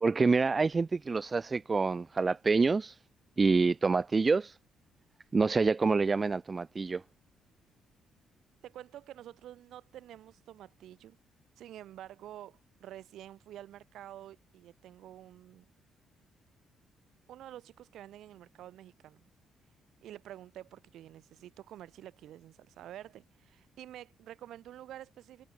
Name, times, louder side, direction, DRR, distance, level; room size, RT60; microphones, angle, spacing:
voice 1, 0.0-3.0 3.4-4.5 5.3-7.0, right 4 dB, 30° right, 0.3 m, -27 dB
voice 2, 8.6-11.2 11.6-15.7 17.3-19.3 20.0-25.4, right 12 dB, 80° right, 6.0 m, -49 dB
cardioid pair, 90°, 0 cm